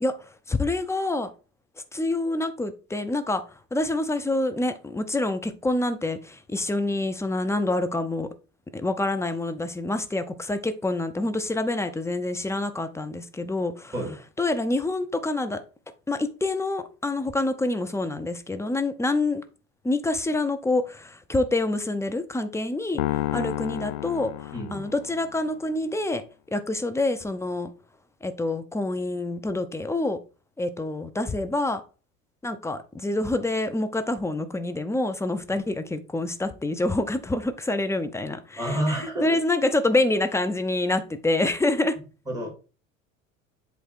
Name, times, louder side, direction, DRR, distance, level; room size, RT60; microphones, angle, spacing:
voice 1, 0.0-1.3 1.9-8.3 8.7-13.9 14.4-15.6 16.1-19.4 19.8-26.2 26.5-27.7 28.2-30.2 30.6-31.8 32.4-42.0, left 2 dB, 5° left, 0.7 m, -27 dB
sound 1, 23.0-25.4, left 15 dB, 55° left, 0.6 m, -30 dB
voice 2, 24.5-24.9 38.6-39.4 42.3-42.5, equal, 10° right, 3.5 m, -29 dB
7.9 x 3.3 x 4.5 m
figure-of-eight pair, 70°, 40 cm